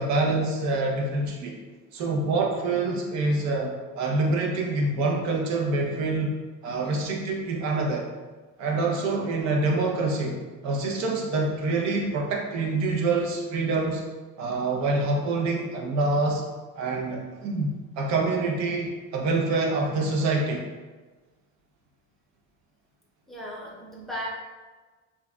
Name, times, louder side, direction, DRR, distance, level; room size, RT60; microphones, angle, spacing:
voice 1, 0.0-1.5 1.9-6.4 6.6-8.1 8.6-14.0 14.4-16.4 16.8-20.6, right 3 dB, 55° right, 0 dB, 0.8 m, -26 dB
voice 2, 23.3-24.3, equal, ahead, -5 dB, 0.6 m, -36 dB
7.0 x 2.4 x 2.2 m, 1.3 s
cardioid pair, 170°, 33 cm